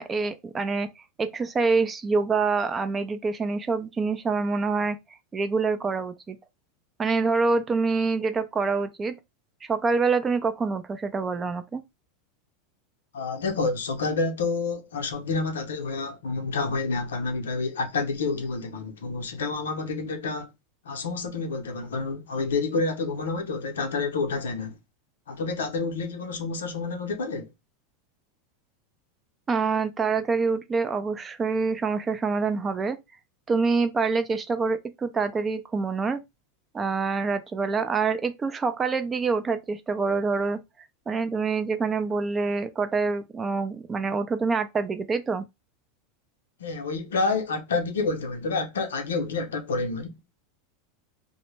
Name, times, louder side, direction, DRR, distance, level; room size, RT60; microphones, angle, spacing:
voice 1, 0.0-5.0 5.3-6.4 7.0-9.2 9.7-11.8 29.5-33.0 33.5-36.2 36.7-40.6 41.1-45.4, right 4 dB, 20° right, 0.4 m, -26 dB
voice 2, 13.1-20.5 20.8-24.8 25.3-27.5 46.6-50.2, left 3 dB, 85° left, 0.6 m, -29 dB
2.1 x 2.0 x 3.1 m
hypercardioid pair, 100°, 0 cm